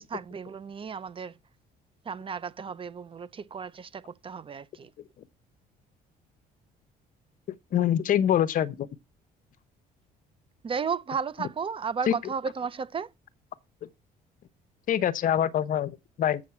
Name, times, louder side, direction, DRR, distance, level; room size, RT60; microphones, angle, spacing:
voice 1, 0.0-1.3 2.1-4.9 10.6-13.1, right 6 dB, 30° right, 0.6 m, -34 dB
voice 2, 7.7-8.9 12.1-12.2 14.9-16.4, left 10 dB, 55° left, 0.8 m, -24 dB
7.6 x 6.1 x 7.1 m
cardioid pair, 110°, 17 cm